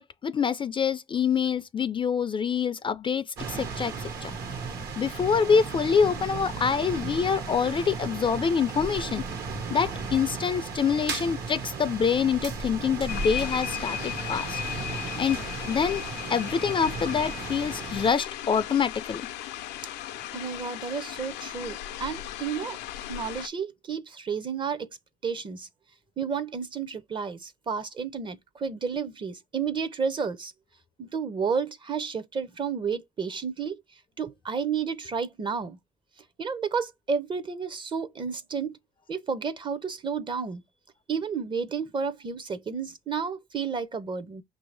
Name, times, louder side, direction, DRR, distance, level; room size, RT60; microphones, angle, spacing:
voice 1, 0.0-3.9 4.2-4.3 5.0-9.2 9.7-14.6 15.2-15.4 15.7-16.0 16.3-19.2, left 6 dB, 30° left, 0.3 m, -26 dB
sound 1, 3.4-18.1, right 4 dB, 70° right, 1.3 m, -35 dB
sound 2, 13.1-23.5, left 11 dB, 90° left, 0.5 m, -36 dB
voice 2, 20.3-22.8 23.1-24.9 25.2-25.7 26.2-30.5 31.0-33.8 34.2-35.8 36.4-38.8 39.1-40.6 41.1-44.4, right 6 dB, 30° right, 0.6 m, -31 dB
5.5 x 2.7 x 3.2 m
cardioid pair, 110°, 17 cm